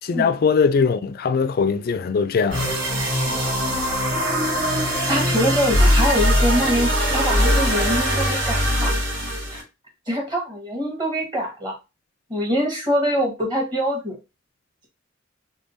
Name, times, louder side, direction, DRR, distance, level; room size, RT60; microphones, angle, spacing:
voice 1, 0.0-2.8, left 5 dB, 50° left, 0.3 m, -21 dB
sound 1, 2.5-9.6, equal, 90° right, 2.4 m, -21 dB
voice 2, 4.9-8.9 9.5-9.6 10.1-11.7 12.3-14.2, equal, 25° right, 1.4 m, -24 dB
3.6 x 3.5 x 2.6 m
head